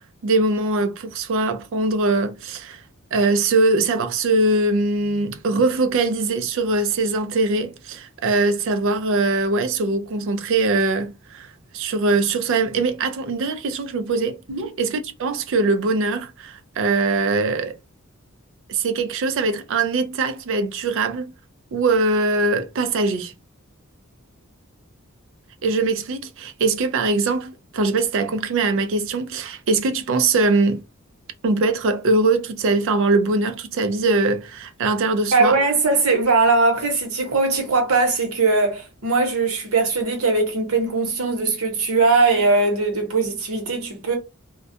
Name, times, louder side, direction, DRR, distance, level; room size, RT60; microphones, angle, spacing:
voice 1, 0.2-2.8 3.1-14.4 14.8-17.7 18.7-21.3 21.7-23.3 25.6-30.8 31.4-35.6, right 3 dB, 60° right, 0.4 m, -22 dB
voice 2, 35.3-44.2, right 3 dB, 85° right, 0.9 m, -20 dB
2.3 x 2.1 x 2.6 m
head